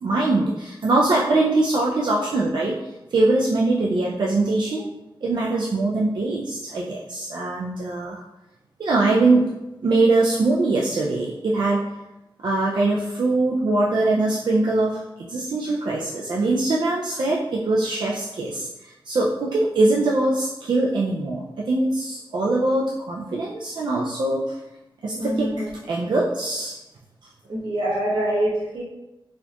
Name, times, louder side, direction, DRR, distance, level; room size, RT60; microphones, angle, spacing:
voice 1, 0.0-4.9 5.2-8.2 8.8-9.5 9.8-11.9 12.4-24.6 25.0-26.8, right 2 dB, 60° right, -3 dB, 0.4 m, -22 dB
voice 2, 25.1-25.7 27.5-28.8, right 1 dB, 80° right, -5 dB, 1.2 m, -25 dB
4.2 x 2.3 x 2.8 m, 0.98 s
wide cardioid pair, 120°, 9 cm